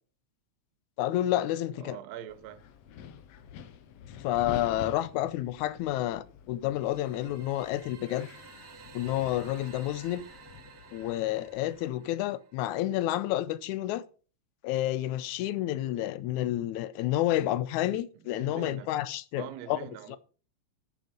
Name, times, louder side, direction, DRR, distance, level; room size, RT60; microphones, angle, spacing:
voice 1, 1.0-2.0 4.2-8.3 8.9-10.2 10.9-14.0 14.6-19.8 20.1-20.2, left 14 dB, 85° left, 2.0 m, -30 dB
voice 2, 1.8-2.6 18.2-19.0 19.4-20.2, right 11 dB, 70° right, 1.9 m, -43 dB
Wind, 2.3-11.8, left 8 dB, 70° left, 1.9 m, -47 dB
sound 1, 6.7-12.7, right 7 dB, 55° right, 1.2 m, -53 dB
9.0 x 8.8 x 5.1 m
omnidirectional pair, 3.3 m